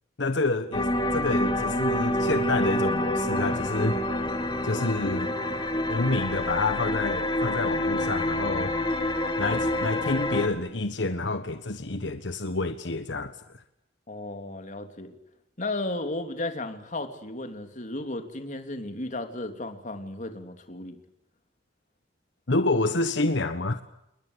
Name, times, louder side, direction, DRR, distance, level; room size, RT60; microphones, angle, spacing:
voice 1, 0.2-4.0 4.6-5.3 5.9-8.7 9.4-13.6 22.5-23.8, left 2 dB, 75° left, 10 dB, 1.3 m, -28 dB
sound 1, 0.7-10.5, left 1 dB, 25° left, 2.6 m, -27 dB
voice 2, 14.1-15.2 15.6-21.0, left 2 dB, 40° left, 6 dB, 3.2 m, -34 dB
29.0 x 21.0 x 8.2 m, 0.84 s
head